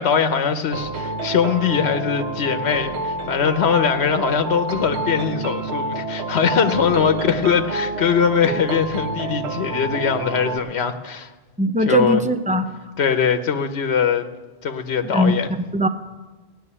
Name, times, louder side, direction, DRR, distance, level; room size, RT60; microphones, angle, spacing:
voice 1, 0.0-11.3 11.8-12.2 13.0-14.3 14.6-15.5, left 6 dB, 80° left, 8 dB, 1.1 m, -21 dB
sound 1, 0.7-10.6, right 2 dB, 85° right, 1.1 m, -28 dB
voice 2, 11.6-12.7 15.0-15.4 15.7-15.9, equal, 10° right, 7 dB, 0.6 m, -20 dB
16.5 x 6.3 x 9.8 m, 1.2 s
omnidirectional pair, 1.1 m